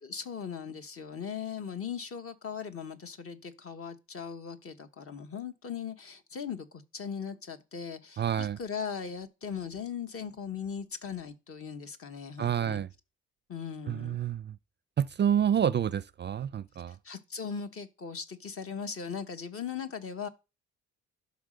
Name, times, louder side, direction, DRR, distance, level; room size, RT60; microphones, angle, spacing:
voice 1, 0.0-12.8 13.5-14.2 16.9-20.3, left 6 dB, 50° left, 1.3 m, -39 dB
voice 2, 8.2-8.6 12.4-12.9 13.9-14.6 15.0-16.9, right 9 dB, 35° right, 0.4 m, -28 dB
11.5 x 4.2 x 6.5 m
cardioid pair, 90°, 30 cm